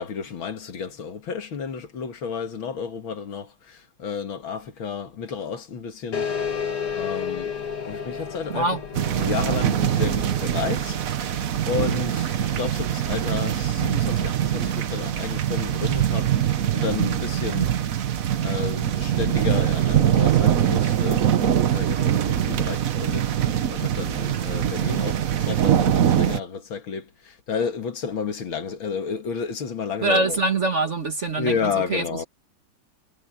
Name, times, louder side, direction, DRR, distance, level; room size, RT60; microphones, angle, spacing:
voice 1, 0.0-6.3 6.9-7.6 7.9-8.7 9.2-11.0 11.7-16.3 16.7-17.7 18.4-21.2 21.7-30.4 31.4-32.3, left 6 dB, 65° left, 2.5 m, -31 dB
sound 1, 6.1-11.2, left 6 dB, 85° left, 3.3 m, -32 dB
voice 2, 8.5-8.8 30.0-32.2, right 2 dB, 35° right, 1.6 m, -24 dB
sound 2, 8.9-26.4, right 10 dB, 55° right, 1.0 m, -23 dB
omnidirectional pair, 2.4 m